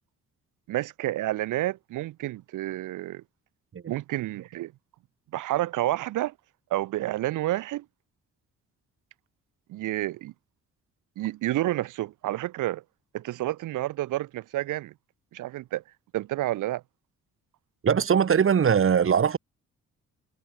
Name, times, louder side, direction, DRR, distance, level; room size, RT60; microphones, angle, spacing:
voice 1, 0.7-3.2 3.9-4.7 5.3-6.3 6.7-7.8 9.7-10.3 11.2-12.8 13.1-14.9 15.3-15.8 16.1-16.8, right 15 dB, 90° right, 4.1 m, -29 dB
voice 2, 17.8-19.4, right 7 dB, 45° right, 2.8 m, -21 dB
cardioid pair, 90°, 30 cm